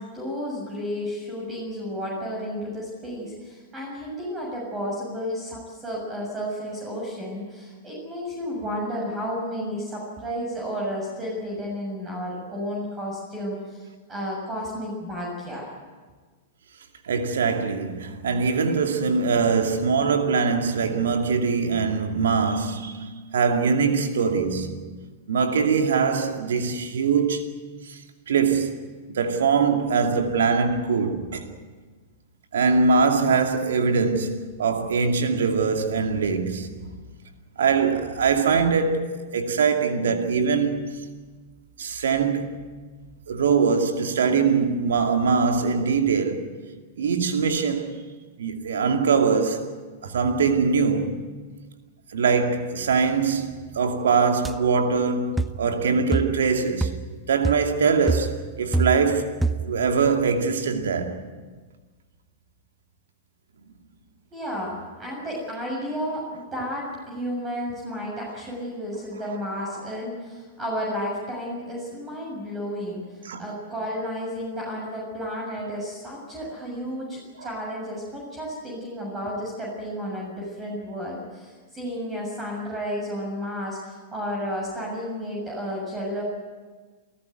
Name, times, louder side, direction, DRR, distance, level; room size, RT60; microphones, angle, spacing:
voice 1, 0.0-15.7 64.3-86.2, equal, 20° right, 7.2 m, -32 dB
voice 2, 17.0-24.9 25.3-28.0 28.3-28.8 29.1-31.5 32.5-36.9 37.6-41.1 41.8-42.6 43.3-46.5 47.0-48.0 48.4-49.8 50.0-51.2 52.1-57.0 57.3-61.2 69.6-69.8 73.2-73.4 77.4-77.5, right 5 dB, 65° right, 2.4 m, -23 dB
sound 1, 54.4-54.6 55.4-55.6 56.1-56.5 56.8-57.1 57.4-57.7 58.1-59.2 59.4-59.8, right 3 dB, 5° right, 0.8 m, -26 dB
28.5 x 14.5 x 9.3 m
figure-of-eight pair, 100°, 0 cm